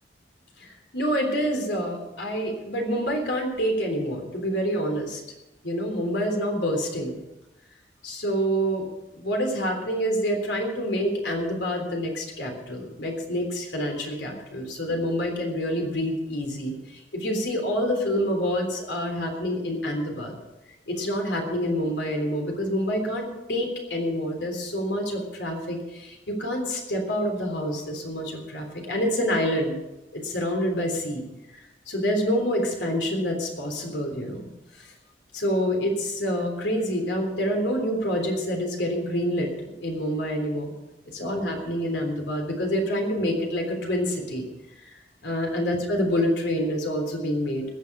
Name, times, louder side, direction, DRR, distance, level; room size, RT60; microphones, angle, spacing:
voice 1, 0.6-5.2 5.6-7.2 8.0-8.9 9.1-20.4 20.9-29.7 30.1-31.3 31.5-34.5 34.8-34.9 35.3-39.5 39.8-40.7 41.1-44.5 44.9-47.7, equal, 90° left, 2 dB, 3.5 m, -27 dB
20.5 x 7.5 x 6.1 m, 0.98 s
head